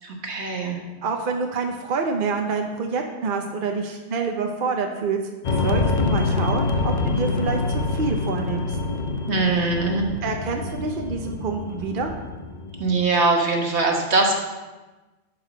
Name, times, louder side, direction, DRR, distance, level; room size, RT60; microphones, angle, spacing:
voice 1, 0.0-0.8 9.3-10.1 12.8-14.3, right 3 dB, 75° right, 1 dB, 1.6 m, -22 dB
voice 2, 1.0-5.2 5.6-8.8 10.2-12.1, right 4 dB, 55° right, 3 dB, 0.9 m, -27 dB
sound 1, 5.4-13.0, left 3 dB, 50° left, 0.6 m, -26 dB
11.0 x 4.8 x 5.1 m, 1.2 s
omnidirectional pair, 1.2 m